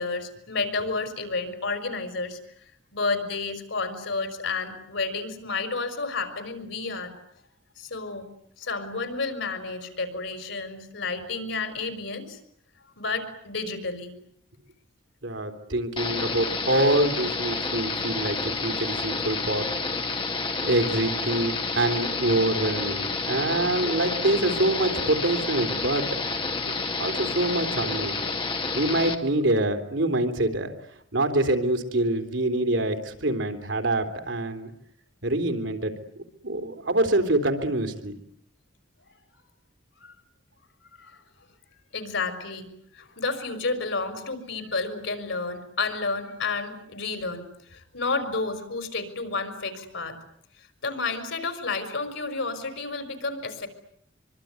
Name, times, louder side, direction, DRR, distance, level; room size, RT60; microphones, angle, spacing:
voice 1, 0.0-2.4 2.9-7.1 7.8-8.3 8.6-12.4 13.0-14.1 28.2-28.8 31.3-31.4 40.0-40.1 41.0-41.2 41.9-42.7 42.9-47.4 47.7-50.2 50.6-53.7, left 3 dB, 90° left, 9 dB, 5.0 m, -31 dB
voice 2, 15.2-19.7 20.6-26.1 27.0-28.2 28.8-30.7 31.1-34.7 35.2-35.9 36.4-38.1, right 1 dB, 80° right, 8 dB, 3.6 m, -25 dB
sound 1, 16.0-29.2, left 3 dB, 25° left, 2.4 m, -29 dB
24.5 x 24.0 x 9.7 m, 0.70 s
head